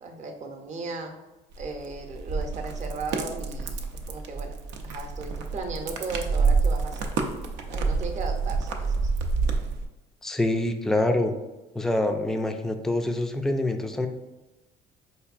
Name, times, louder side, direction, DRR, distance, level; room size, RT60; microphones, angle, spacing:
voice 1, 0.0-1.2 1.6-3.8 4.1-4.6 4.8-7.1 7.7-9.0, right 3 dB, 40° right, 4 dB, 0.6 m, -36 dB
sound 1, 1.5-9.9, right 4 dB, 85° right, 0.4 m, -28 dB
voice 2, 10.2-11.3 11.8-14.1, left 1 dB, ahead, 6 dB, 0.3 m, -25 dB
4.5 x 2.7 x 2.4 m, 1.1 s
supercardioid pair, 80°, 19 cm